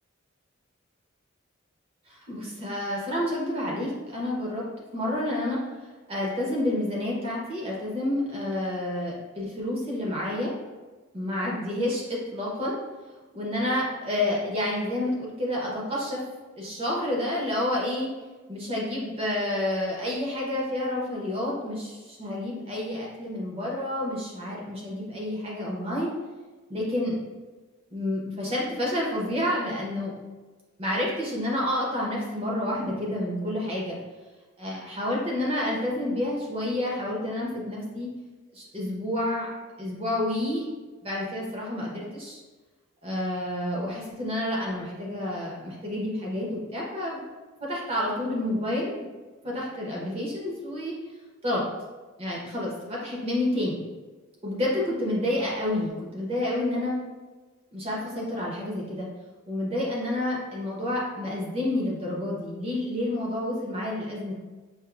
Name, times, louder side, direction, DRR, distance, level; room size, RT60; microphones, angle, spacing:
voice 1, 2.1-4.6 4.9-5.6 6.1-10.5 11.1-12.8 13.3-16.2 16.5-18.1 18.5-26.1 26.7-27.1 27.9-30.1 30.8-34.0 34.6-38.1 38.5-39.5 39.8-40.6 41.0-42.4 43.0-47.2 47.6-49.1 49.4-51.0 51.4-51.6 52.2-53.8 54.4-57.0 57.7-59.1 59.5-64.3, left 1 dB, 30° right, -3 dB, 0.8 m, -29 dB
5.0 x 2.5 x 2.4 m, 1.3 s
head